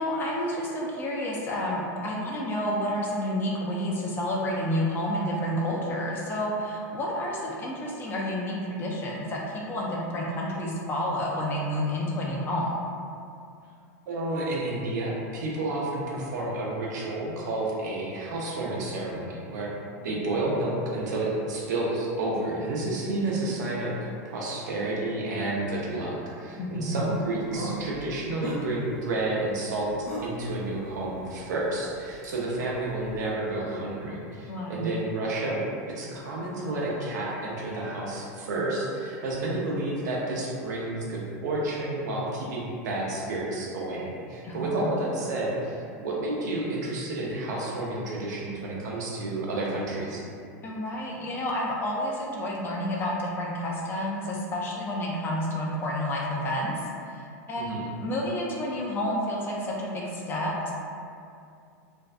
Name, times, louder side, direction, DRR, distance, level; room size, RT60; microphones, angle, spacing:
voice 1, 0.0-12.8 26.5-27.1 34.5-34.9 44.4-45.0 50.6-56.8 57.1-60.7, left 1 dB, 25° left, -3 dB, 0.4 m, -30 dB
voice 2, 14.1-19.7 20.0-29.9 30.2-35.6 35.9-50.2 57.5-57.9, right 2 dB, 85° right, -4 dB, 0.6 m, -30 dB
sound 1, 27.0-33.3, equal, 55° left, 0.8 m, -41 dB
2.5 x 2.2 x 2.4 m, 2.4 s
supercardioid pair, 135°, 9 cm